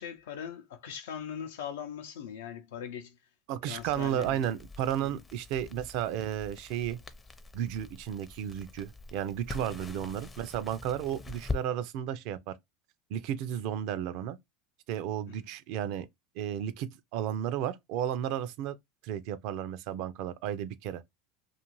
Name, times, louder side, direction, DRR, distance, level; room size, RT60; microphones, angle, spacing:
voice 1, 0.0-3.3 3.7-4.5 5.0-5.2 15.3-15.4, left 8 dB, 80° left, 0.5 m, -41 dB
voice 2, 3.5-7.0 7.5-12.5 13.1-14.4 14.9-16.1 16.4-18.8 19.0-21.0, right 10 dB, 65° right, 0.4 m, -33 dB
Crackle, 3.8-11.6, left 3 dB, 20° left, 0.5 m, -43 dB
2.5 x 2.4 x 3.0 m
hypercardioid pair, 95°, 0 cm